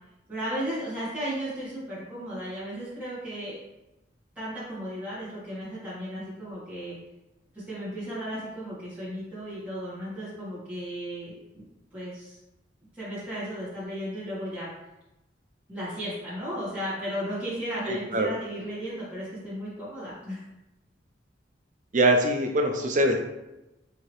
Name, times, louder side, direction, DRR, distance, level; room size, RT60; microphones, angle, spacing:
voice 1, 0.3-3.6 4.3-7.0 7.5-11.3 11.9-12.4 12.9-14.7 15.7-20.5, equal, 10° right, -11 dB, 1.4 m, -35 dB
voice 2, 17.9-18.3 21.9-23.2, right 1 dB, 45° right, 3 dB, 0.5 m, -23 dB
4.6 x 2.8 x 3.1 m, 0.95 s
head